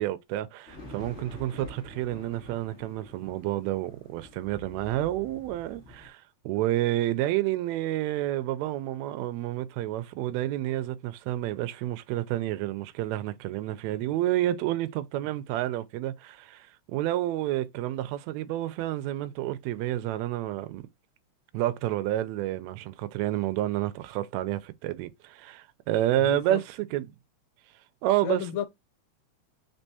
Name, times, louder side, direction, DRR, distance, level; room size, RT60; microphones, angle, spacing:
voice 1, 0.0-20.8 21.5-27.1 28.0-28.4, right 14 dB, 80° right, 1.8 m, -29 dB
sound 1, 0.7-6.1, left 1 dB, 30° left, 2.0 m, -47 dB
voice 2, 26.2-26.6 28.2-28.7, left 11 dB, 75° left, 1.8 m, -32 dB
4.5 x 3.6 x 2.7 m
omnidirectional pair, 3.4 m